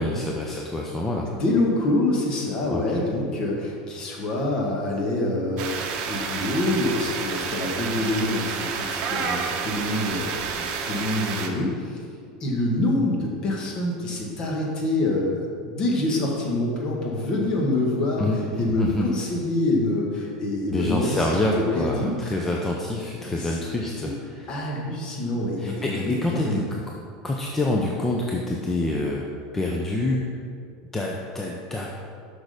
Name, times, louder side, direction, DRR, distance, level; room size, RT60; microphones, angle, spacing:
voice 1, 0.0-1.3 2.7-3.0 18.2-19.1 20.7-24.5 25.6-26.8 27.2-29.3 29.5-30.2 30.9-31.9, left 2 dB, 10° left, -1 dB, 0.6 m, -26 dB
voice 2, 1.3-12.0 12.4-22.2 23.3-23.6 24.0-24.1 24.5-26.6, left 2 dB, 35° left, -1 dB, 1.7 m, -26 dB
sound 1, 5.6-11.5, right 6 dB, 50° right, 0.9 m, -29 dB
6.4 x 6.1 x 5.1 m, 2.2 s
supercardioid pair, 135°, 2 cm